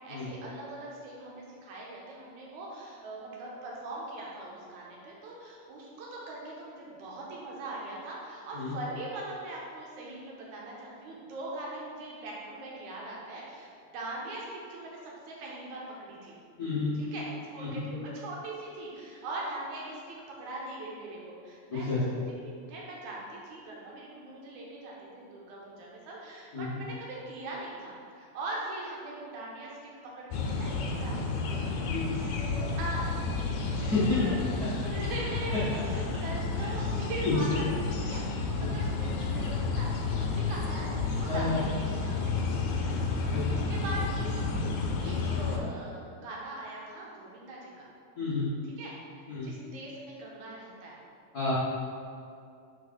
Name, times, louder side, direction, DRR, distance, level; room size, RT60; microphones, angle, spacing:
voice 1, 0.0-16.3 17.0-22.2 22.4-41.6 42.0-44.1 44.9-47.9 48.8-51.0, right 2 dB, 75° right, -4 dB, 2.4 m, -41 dB
voice 2, 16.6-16.9 17.6-17.8 21.7-22.0 26.5-26.8 31.9-32.0 33.8-34.2 36.6-36.7 37.2-37.4 38.6-38.8 41.3-41.6 43.3-43.7 48.2-48.5 49.3-49.5 51.3-51.5, left 3 dB, 60° left, -12 dB, 0.9 m, -30 dB
sound 1, 30.3-45.6, left 4 dB, 85° left, 2.1 m, -31 dB
4.7 x 4.5 x 5.2 m, 2.4 s
omnidirectional pair, 3.5 m